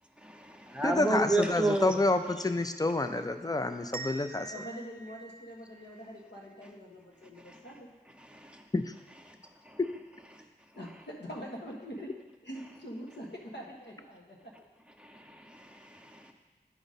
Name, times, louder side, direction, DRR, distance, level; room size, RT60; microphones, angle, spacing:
voice 1, 0.2-1.9 7.5-7.6 8.3-8.6 10.3-10.4 15.0-16.3, right 2 dB, 5° right, 3 dB, 0.8 m, -31 dB
voice 2, 0.8-4.5 8.7-8.9, left 2 dB, 20° left, 8 dB, 0.5 m, -28 dB
sound 1, 3.9-6.7, right 4 dB, 55° right, 0.4 m, -46 dB
voice 3, 4.5-7.9 10.3-12.1 12.4-14.5, equal, 75° left, -2 dB, 1.3 m, -44 dB
9.0 x 5.0 x 4.1 m, 1.2 s
wide cardioid pair, 55°, 18 cm